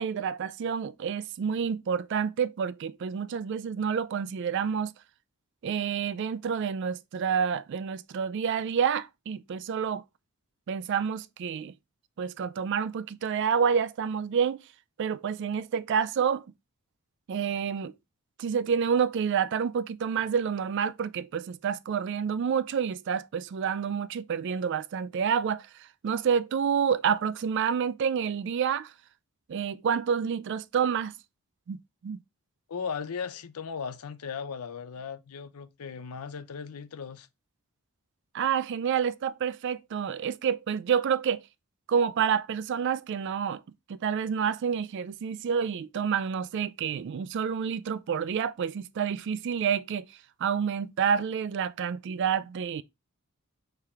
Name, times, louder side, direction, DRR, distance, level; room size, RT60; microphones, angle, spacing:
voice 1, 0.0-4.9 5.6-10.0 10.7-11.7 12.2-14.6 15.0-16.5 17.3-17.9 18.4-28.9 29.5-31.1 31.7-31.8 32.0-32.2 38.3-41.4 41.9-43.6 43.9-50.1 50.4-52.8, right 7 dB, 55° right, 0.3 m, -28 dB
voice 2, 32.7-37.3, left 6 dB, 80° left, 0.5 m, -37 dB
3.5 x 3.4 x 4.2 m
head